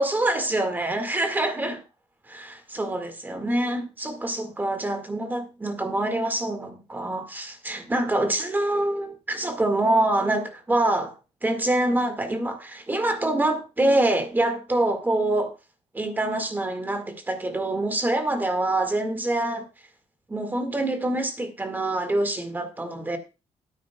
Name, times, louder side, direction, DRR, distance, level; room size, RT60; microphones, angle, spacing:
voice 1, 0.0-1.8 2.3-11.1 11.4-15.5 15.9-19.7 20.3-23.2, right 1 dB, 15° right, 1.9 m, -25 dB
16.5 x 9.5 x 2.3 m
cardioid pair, 120°, 11 cm